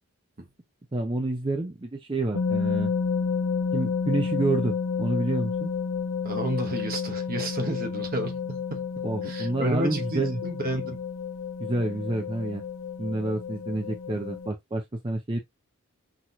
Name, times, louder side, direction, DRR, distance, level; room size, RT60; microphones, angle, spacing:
voice 1, 0.9-2.9 3.7-5.7 9.0-10.4 11.6-12.6 13.0-15.4, right 2 dB, 20° right, 0.5 m, -28 dB
sound 1, 2.3-14.5, left 5 dB, 60° left, 0.9 m, -30 dB
voice 2, 6.2-11.0, right 1 dB, 40° right, 1.1 m, -32 dB
6.0 x 3.0 x 2.6 m
head